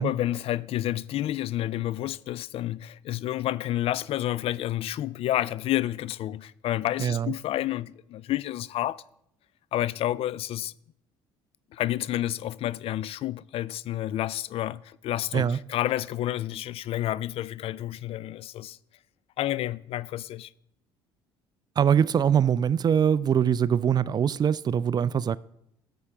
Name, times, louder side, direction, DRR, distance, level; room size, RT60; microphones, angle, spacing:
voice 1, 0.0-9.0 9.7-10.7 11.7-18.8 19.4-20.5, left 13 dB, 55° left, 0.4 m, -30 dB
voice 2, 7.0-7.3 15.3-15.6 21.8-25.4, right 8 dB, 35° right, 0.4 m, -23 dB
11.0 x 7.0 x 3.4 m
hypercardioid pair, 65°, 12 cm